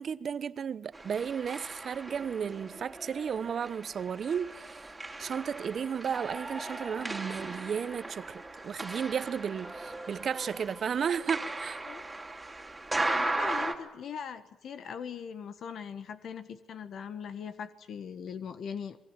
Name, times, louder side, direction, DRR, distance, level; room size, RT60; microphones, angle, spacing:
voice 1, 0.0-4.8 5.2-11.8, right 7 dB, 50° right, 0.9 m, -34 dB
sound 1, 0.9-13.7, right 2 dB, 10° right, 3.2 m, -37 dB
voice 2, 13.0-19.0, left 7 dB, 65° left, 1.5 m, -40 dB
28.0 x 21.0 x 9.1 m
cardioid pair, 110°, 0 cm